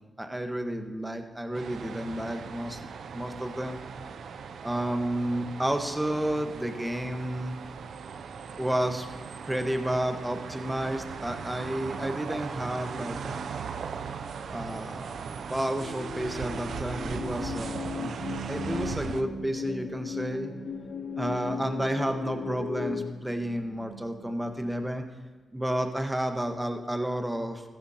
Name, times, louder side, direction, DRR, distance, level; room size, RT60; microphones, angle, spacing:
voice 1, 0.2-2.8 3.1-3.8 4.6-7.6 8.6-9.1 9.5-13.5 14.5-15.2 15.5-18.1 18.5-20.5 21.2-25.1 25.5-27.6, right 1 dB, 10° right, 6 dB, 1.3 m, -31 dB
sound 1, 1.5-19.2, right 6 dB, 75° right, 0.5 m, -38 dB
sound 2, 15.8-23.1, left 7 dB, 70° left, 0.5 m, -37 dB
sound 3, 17.5-25.1, right 3 dB, 40° right, 0.8 m, -44 dB
14.0 x 12.0 x 2.9 m, 1.3 s
cardioid pair, 60°, 0 cm